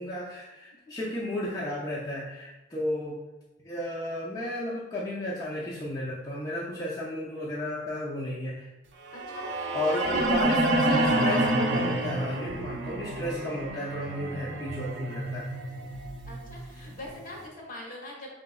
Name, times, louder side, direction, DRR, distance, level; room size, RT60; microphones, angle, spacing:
voice 1, 0.0-3.2 3.6-8.7 9.7-15.5, left 1 dB, 20° left, -7 dB, 0.6 m, -33 dB
voice 2, 9.1-10.3 11.1-11.3 16.3-18.3, left 1 dB, 45° left, -2 dB, 1.2 m, -42 dB
sound 1, 9.1-17.2, right 1 dB, 75° right, 0.5 m, -28 dB
4.8 x 3.8 x 2.3 m, 1.0 s
head